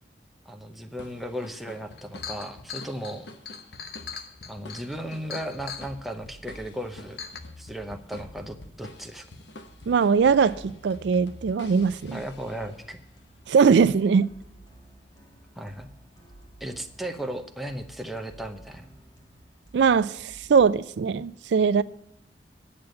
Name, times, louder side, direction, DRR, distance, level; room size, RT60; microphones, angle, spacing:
voice 1, 0.5-3.3 4.5-7.2 7.6-9.3 12.1-13.0 15.6-15.9 16.6-18.9, right 1 dB, ahead, 0.8 m, -36 dB
sound 1, 1.0-12.9, left 2 dB, 80° left, 1.1 m, -47 dB
Chink clink, 1.5-1.6 1.9-5.9 6.7-6.8 7.2-7.4, left 7 dB, 60° left, 0.9 m, -39 dB
sound 2, 5.2-20.7, right 1 dB, 20° left, 1.7 m, -53 dB
voice 2, 9.9-12.2 13.5-14.3 19.7-21.8, right 6 dB, 80° right, 0.4 m, -21 dB
9.7 x 6.9 x 7.6 m
head